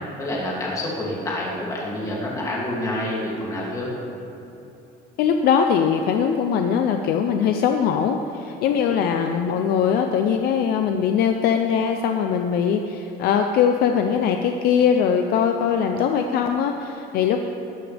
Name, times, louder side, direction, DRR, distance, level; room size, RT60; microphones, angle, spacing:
voice 1, 0.2-3.9 8.7-9.0, left 1 dB, 15° left, -5 dB, 2.6 m, -28 dB
voice 2, 5.2-17.4, left 7 dB, 55° left, 5 dB, 0.6 m, -21 dB
19.5 x 12.0 x 3.5 m, 2.9 s
cardioid pair, 175°, 19 cm